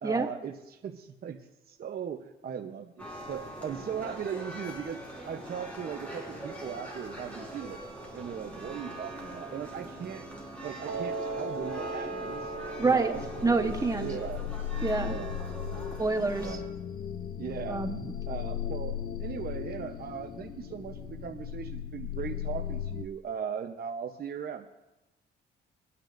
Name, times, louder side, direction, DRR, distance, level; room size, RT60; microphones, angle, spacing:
voice 1, 0.0-1.4 1.7-5.0 5.3-7.8 8.1-10.3 10.6-12.5 12.8-13.2 13.5-14.4 15.0-15.3 15.7-15.9 16.4-16.6 17.4-17.8 18.3-24.7, right 8 dB, 50° right, 4 dB, 0.9 m, -38 dB
sound 1, 3.0-16.6, right 1 dB, 5° left, 4.6 m, -42 dB
Piano, 10.9-17.0, right 2 dB, 75° right, 2.8 m, -40 dB
voice 2, 12.8-13.1 13.4-14.1 14.8-15.2 16.0-16.6 17.7-18.1, right 3 dB, 15° right, 6 dB, 1.2 m, -27 dB
sound 2, 13.1-23.1, left 10 dB, 50° left, 0.5 m, -37 dB
22.0 x 9.8 x 2.6 m, 0.99 s
cardioid pair, 90°, 20 cm